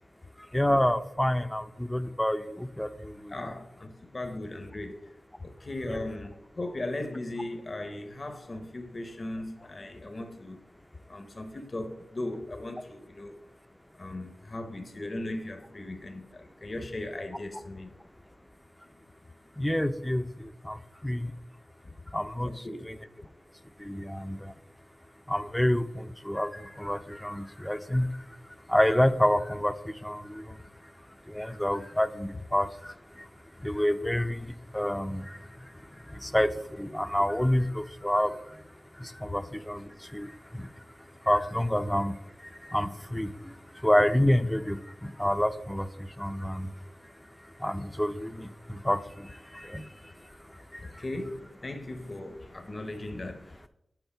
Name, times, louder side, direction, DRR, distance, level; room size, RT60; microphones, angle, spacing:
voice 1, 0.4-3.3 5.9-6.0 19.6-21.3 22.1-23.0 23.8-24.5 25.3-51.0, left 1 dB, 5° left, 0.5 m, -29 dB
voice 2, 3.3-5.1 5.4-10.7 11.1-13.4 14.0-18.0 21.8-21.9 22.4-22.8 39.3-39.4 49.5-49.6 50.8-53.7, left 1 dB, 45° left, 0.8 m, -38 dB
8.1 x 4.0 x 5.7 m
wide cardioid pair, 70°, 0 cm